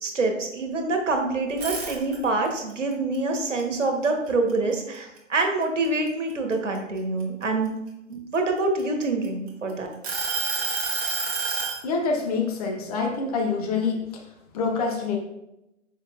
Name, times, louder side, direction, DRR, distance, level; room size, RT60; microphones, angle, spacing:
voice 1, 0.0-7.7 8.1-9.9, right 3 dB, 65° right, 3 dB, 1.4 m, -26 dB
sound 1, 1.5-2.5 2.9-4.7 5.2-5.4 5.8-7.7 8.4-9.5 10.0-11.8, right 4 dB, 25° right, 1.4 m, -28 dB
voice 2, 11.8-14.2 14.5-15.2, left 4 dB, 30° left, 1 dB, 1.0 m, -26 dB
7.2 x 5.2 x 2.5 m, 0.90 s
figure-of-eight pair, 130°, 39 cm